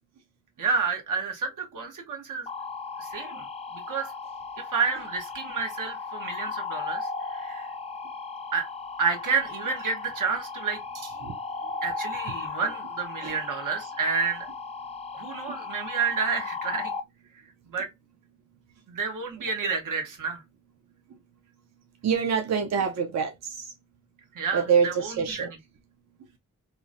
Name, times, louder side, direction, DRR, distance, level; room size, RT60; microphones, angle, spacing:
voice 1, 0.6-2.5 3.0-3.5 3.7-4.1 4.6-7.7 8.5-8.7 9.0-11.1 11.8-14.5 15.1-16.9 17.7-17.9 18.9-20.4 24.3-25.5, right 5 dB, 85° right, 0.9 m, -30 dB
sound 1, 2.5-17.0, left 4 dB, 20° left, 0.3 m, -36 dB
voice 2, 22.0-23.7 24.5-25.5, right 6 dB, 60° right, 0.5 m, -26 dB
3.0 x 2.0 x 2.4 m
wide cardioid pair, 105°, 31 cm